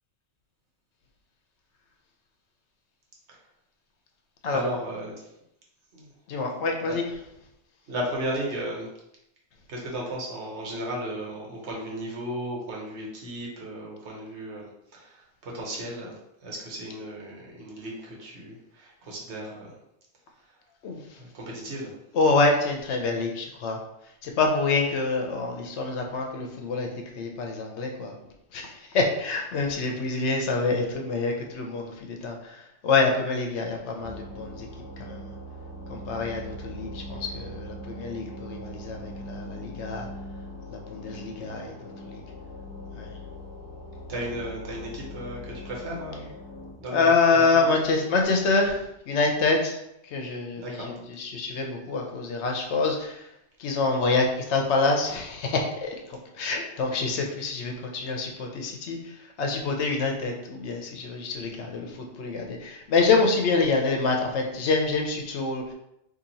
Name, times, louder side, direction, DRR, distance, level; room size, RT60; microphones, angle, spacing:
voice 1, 4.5-5.1 5.9-6.1 7.9-8.9 9.7-19.7 21.2-21.9 44.1-46.3 46.8-47.8 50.6-50.9, right 1 dB, 70° right, -2 dB, 1.2 m, -35 dB
voice 2, 6.3-7.0 20.8-21.0 22.1-23.8 24.2-26.9 27.2-28.2 28.5-34.7 35.0-35.3 35.9-40.1 40.7-41.7 42.1-42.2 42.9-43.1 46.9-49.8 50.0-53.3 53.6-59.1 59.4-65.7, left 3 dB, 70° left, 2 dB, 0.9 m, -26 dB
sound 1, 34.0-46.7, equal, 35° left, 1.1 m, -41 dB
2.8 x 2.7 x 3.9 m, 0.83 s
omnidirectional pair, 1.2 m